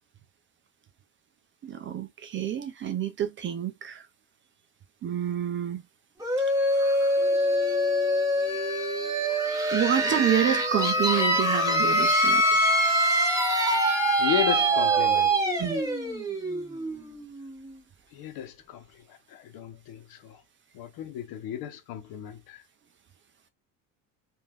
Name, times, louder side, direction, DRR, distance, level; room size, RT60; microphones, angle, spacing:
voice 1, 1.6-4.0 5.0-5.8 6.7-7.1 9.7-12.6 15.6-15.8, right 10 dB, 30° right, 0.4 m, -28 dB
sound 1, 6.2-17.7, right 1 dB, 10° right, 1.4 m, -24 dB
voice 2, 14.2-15.3 18.1-18.8 19.3-20.4 20.7-22.6, left 10 dB, 65° left, 0.9 m, -33 dB
3.6 x 2.6 x 2.3 m
cardioid pair, 135°, 39 cm